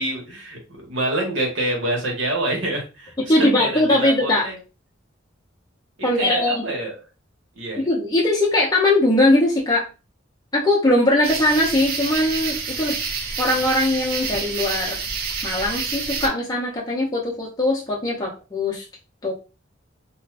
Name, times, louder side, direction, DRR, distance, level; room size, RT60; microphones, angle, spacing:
voice 1, 0.0-4.6 6.0-6.9 7.5-7.8, right 1 dB, 85° right, 0 dB, 1.3 m, -26 dB
voice 2, 3.3-4.5 6.0-6.6 7.8-9.9 10.5-13.0 13.4-15.0 15.4-18.8 19.2-19.3, left 1 dB, 20° left, -4 dB, 0.7 m, -20 dB
sound 1, 11.2-16.3, right 5 dB, 55° right, 0.7 m, -28 dB
2.5 x 2.4 x 3.3 m, 0.31 s
head